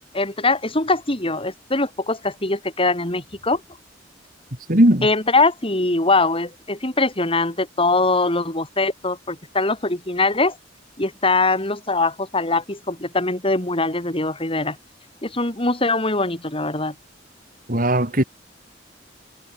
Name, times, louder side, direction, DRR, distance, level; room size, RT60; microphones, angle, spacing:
voice 1, 0.1-3.6 5.0-10.6 11.0-14.8 15.2-16.9, left 3 dB, 30° left, 4.8 m, -22 dB
voice 2, 4.7-5.1 17.7-18.2, right 1 dB, 45° right, 3.8 m, -17 dB
head